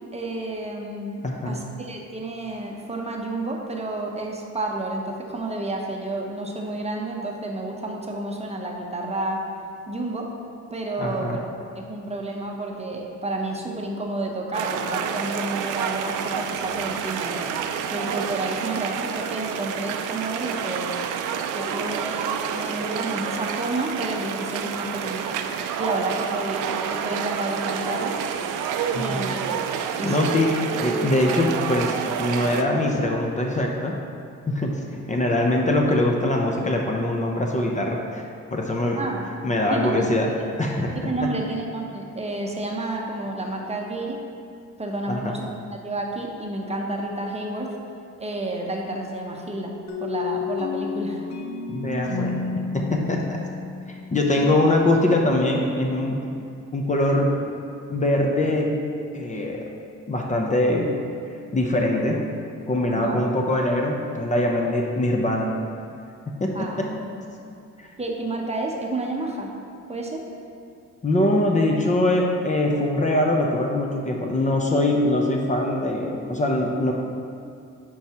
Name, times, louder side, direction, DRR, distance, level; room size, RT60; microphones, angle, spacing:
voice 1, 0.1-9.4 9.9-10.3 10.7-11.4 11.8-17.5 17.9-21.0 21.5-25.4 25.8-28.2 28.9-29.4 30.0-30.3 39.0-39.3 39.7-40.0 41.0-44.2 44.8-45.4 45.7-47.7 48.2-49.7 50.0-51.2 54.4-54.6 62.9-63.2 66.5-66.9 68.0-69.5 69.9-70.2, right 2 dB, 20° right, 0 dB, 0.8 m, -30 dB
voice 2, 1.2-1.6 11.0-11.4 28.9-29.2 30.0-34.0 34.5-34.7 35.1-38.2 38.5-39.0 39.4-40.3 40.6-41.3 45.1-45.3 51.7-52.4 52.7-53.4 53.9-56.2 56.7-57.4 57.9-58.8 59.1-59.7 60.1-61.0 61.5-62.2 62.7-65.5 66.3-67.1 67.8-67.9 71.0-76.9, left 1 dB, 25° left, 0 dB, 0.7 m, -23 dB
sound 1, 14.5-32.6, right 7 dB, 90° right, 0.5 m, -28 dB
sound 2, 49.9-54.6, left 5 dB, 65° left, 0.8 m, -31 dB
8.8 x 4.7 x 2.9 m, 2.4 s
cardioid pair, 90°, 30 cm